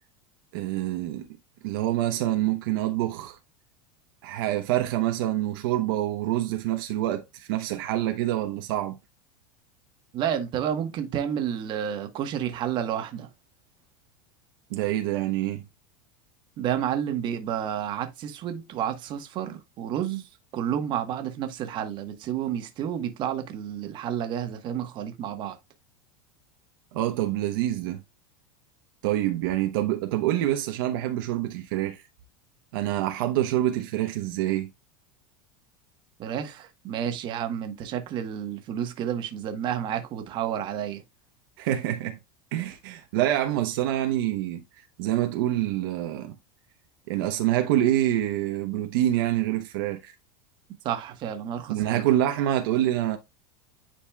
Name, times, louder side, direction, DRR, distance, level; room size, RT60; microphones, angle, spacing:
voice 1, 0.5-1.3 1.6-3.4 4.2-8.9 14.7-15.6 26.9-28.0 29.0-32.0 32.7-34.7 41.6-42.2 42.5-44.6 45.0-46.4 47.1-50.1 51.7-53.2, right 13 dB, 70° right, 0.9 m, -26 dB
voice 2, 10.1-13.3 16.6-20.2 20.5-25.6 36.2-41.0 50.8-52.0, right 9 dB, 40° right, 1.2 m, -30 dB
10.0 x 4.2 x 2.3 m
supercardioid pair, 135°, 12 cm